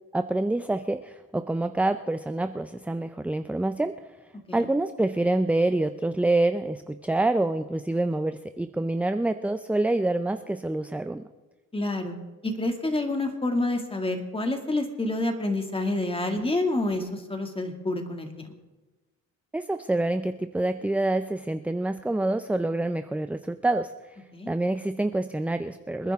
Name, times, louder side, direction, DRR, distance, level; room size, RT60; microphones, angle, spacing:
voice 1, 0.1-4.0 4.5-11.2 19.5-23.9 24.5-26.1, right 2 dB, 5° right, 9 dB, 0.5 m, -26 dB
voice 2, 11.7-12.1 12.4-18.5 24.3-24.5, left 2 dB, 20° left, 4 dB, 2.2 m, -28 dB
27.0 x 9.9 x 3.6 m, 1.2 s
cardioid pair, 90°, 30 cm